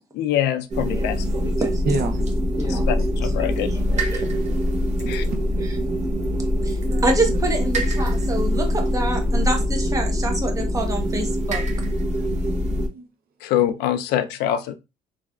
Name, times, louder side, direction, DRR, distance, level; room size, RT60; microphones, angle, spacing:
voice 1, 0.1-1.5 2.7-3.7 5.1-5.3 13.4-14.7, left 11 dB, 80° left, 0.4 m, -24 dB
sound 1, 0.7-12.9, equal, 45° right, 1.0 m, -23 dB
voice 2, 0.9-1.7 2.6-2.8 3.4-4.2 5.6-5.8 6.0-6.1 6.6-6.8 7.0-11.6, right 2 dB, 20° right, 0.9 m, -27 dB
voice 3, 4.3-4.8 5.0-5.4 6.9-7.0 12.3-13.1, right 3 dB, 60° right, 0.7 m, -30 dB
3.2 x 2.6 x 2.3 m
cardioid pair, 110°, 17 cm